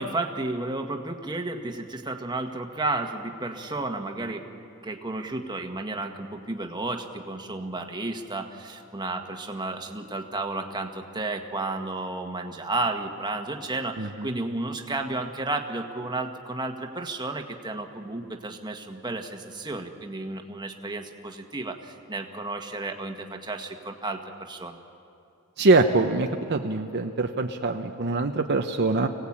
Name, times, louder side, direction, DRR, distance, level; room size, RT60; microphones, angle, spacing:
voice 1, 0.0-4.4 4.8-24.8, right 2 dB, 20° right, 3 dB, 1.5 m, -32 dB
voice 2, 14.0-14.3 25.6-29.1, right 3 dB, 50° right, 4 dB, 0.9 m, -23 dB
25.5 x 17.5 x 8.7 m, 2.5 s
head